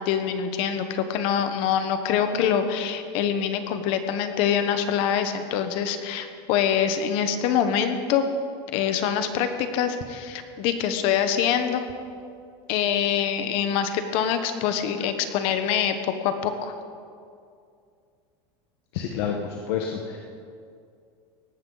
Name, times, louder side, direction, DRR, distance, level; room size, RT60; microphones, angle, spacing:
voice 1, 0.0-8.2 8.7-11.9 12.7-16.7, left 8 dB, 45° left, 8 dB, 1.1 m, -25 dB
voice 2, 18.9-20.2, left 7 dB, 70° left, 2 dB, 1.3 m, -29 dB
18.5 x 14.5 x 4.0 m, 2.3 s
supercardioid pair, 175°, 13 cm